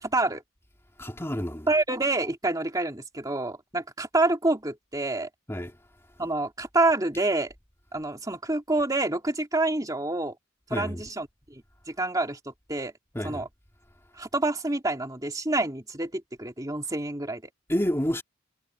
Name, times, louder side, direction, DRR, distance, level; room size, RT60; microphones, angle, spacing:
voice 1, 0.0-0.4 1.7-5.3 6.2-7.5 7.9-10.3 10.7-11.6 11.9-12.9 13.2-13.5 14.2-17.4, right 2 dB, 15° right, 2.7 m, -27 dB
voice 2, 1.0-1.7 5.5-5.7 10.7-11.0 13.1-13.5 17.7-18.2, equal, 10° left, 2.6 m, -29 dB
head